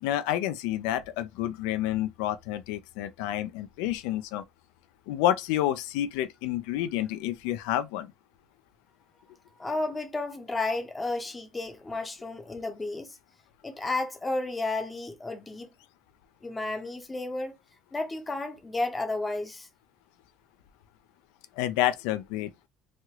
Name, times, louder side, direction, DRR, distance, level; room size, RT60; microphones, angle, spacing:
voice 1, 0.0-4.4 5.1-8.1 21.6-22.7, left 12 dB, 80° left, 0.3 m, -29 dB
voice 2, 9.6-13.2 13.6-15.7 16.4-17.5 17.9-19.7, left 2 dB, 10° left, 0.6 m, -32 dB
3.0 x 2.4 x 2.9 m
cardioid pair, 170°, 0 cm